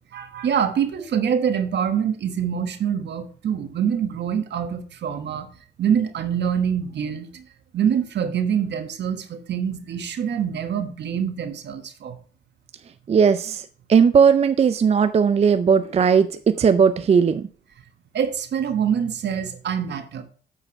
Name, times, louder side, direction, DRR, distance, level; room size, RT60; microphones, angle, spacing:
voice 1, 0.1-5.5 5.8-7.4 7.7-12.2 18.1-20.2, right 8 dB, 60° right, 7 dB, 1.3 m, -25 dB
voice 2, 13.1-16.3 16.6-17.5, right 6 dB, 30° right, 11 dB, 0.4 m, -17 dB
8.8 x 4.7 x 4.5 m, 0.43 s
cardioid pair, 90°, 20 cm